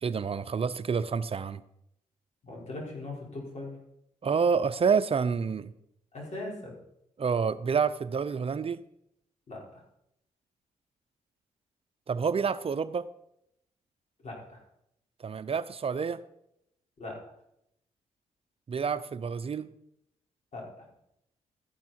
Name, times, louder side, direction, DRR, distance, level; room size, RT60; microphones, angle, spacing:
voice 1, 0.0-1.6 4.2-5.7 7.2-8.8 12.1-13.1 15.2-16.2 18.7-19.7, right 6 dB, 45° right, 13 dB, 0.6 m, -28 dB
voice 2, 2.4-3.8 6.1-6.7 9.5-9.8 14.2-14.6 17.0-17.2 20.5-20.9, left 2 dB, 55° left, -2 dB, 5.5 m, -40 dB
13.5 x 10.0 x 4.5 m, 0.77 s
cardioid pair, 65°, 14 cm